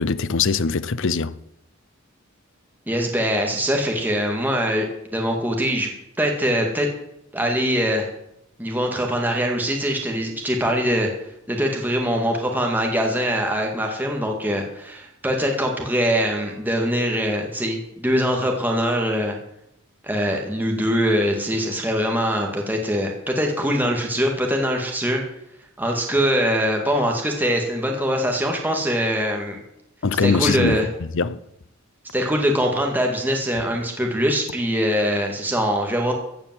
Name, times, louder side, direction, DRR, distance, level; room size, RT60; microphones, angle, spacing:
voice 1, 0.0-1.4 30.0-31.4, left 4 dB, 65° left, 0.7 m, -22 dB
voice 2, 2.9-5.9 6.2-6.9 7.3-8.1 8.6-11.1 11.5-19.4 20.0-25.2 25.8-29.6 30.2-30.9 32.1-36.1, equal, 10° right, 2.0 m, -23 dB
15.5 x 8.7 x 7.6 m
head